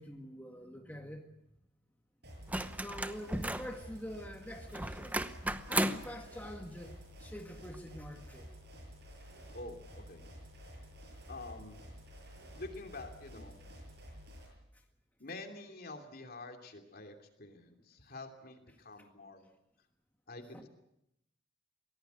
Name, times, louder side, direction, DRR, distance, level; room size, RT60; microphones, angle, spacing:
voice 1, 0.0-1.4 2.7-5.2 5.7-8.5 14.7-14.8 19.0-19.1 20.5-20.7, equal, 10° left, 2 dB, 1.8 m, -46 dB
sound 1, 2.2-14.5, equal, 60° right, 7.9 m, -51 dB
sound 2, 2.5-3.8 4.7-6.1 7.7-7.8, right 1 dB, 10° right, 0.8 m, -34 dB
voice 2, 9.5-10.2 11.3-11.8 12.6-13.6 15.2-19.5 20.3-20.7, left 2 dB, 50° left, 4 dB, 2.9 m, -47 dB
23.0 x 17.5 x 8.2 m, 0.83 s
head